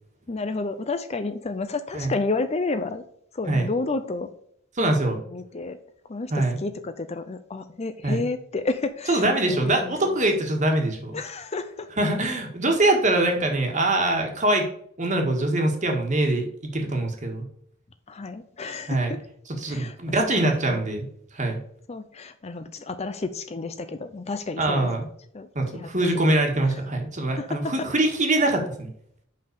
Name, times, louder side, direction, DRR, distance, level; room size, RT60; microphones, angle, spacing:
voice 1, 0.3-3.0 3.3-4.3 5.3-5.8 6.1-10.2 11.1-11.9 18.1-19.2 19.7-20.0 20.4-20.8 21.9-24.9 25.3-26.1 26.6-26.8 27.3-27.9, left 3 dB, 30° left, 10 dB, 0.5 m, -31 dB
voice 2, 4.8-5.2 6.3-6.6 8.0-8.2 9.1-11.2 12.0-14.7 15.0-16.5 16.7-17.5 18.9-19.1 19.6-21.1 21.3-21.6 24.6-25.0 25.6-28.9, right 2 dB, 35° right, 3 dB, 1.7 m, -23 dB
5.6 x 5.5 x 6.7 m, 0.65 s
head